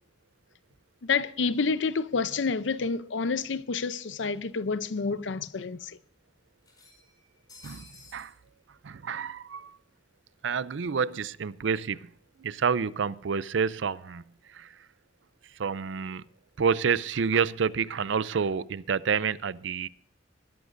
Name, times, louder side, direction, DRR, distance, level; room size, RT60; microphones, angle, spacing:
voice 1, 1.0-6.0, left 4 dB, 75° left, 0.6 m, -29 dB
sound 1, 3.6-3.7 4.8-4.9 5.2-5.3 6.6-8.3, left 3 dB, 20° left, 5.3 m, -53 dB
voice 2, 7.6-8.3 8.8-9.8 10.4-12.0 12.4-14.2 14.5-14.8 15.5-16.2 16.6-19.9, right 6 dB, 75° right, 0.5 m, -28 dB
20.0 x 11.5 x 2.6 m
head